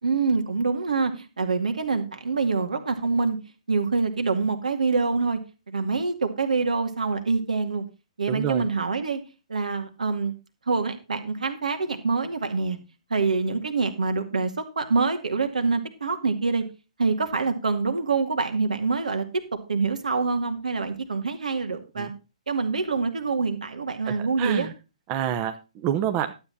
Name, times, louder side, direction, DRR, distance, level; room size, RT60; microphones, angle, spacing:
voice 1, 0.0-3.4 3.7-5.4 5.7-7.8 8.2-9.2 9.5-10.3 10.7-12.8 13.1-16.6 17.0-19.2 19.7-22.1 22.5-24.7, right 4 dB, 75° right, 7 dB, 2.2 m, -25 dB
voice 2, 8.3-8.6 22.0-22.1 24.1-24.7 25.1-26.3, right 10 dB, 30° right, 7 dB, 1.0 m, -28 dB
12.0 x 8.3 x 4.2 m, 0.30 s
hypercardioid pair, 135°, 4 cm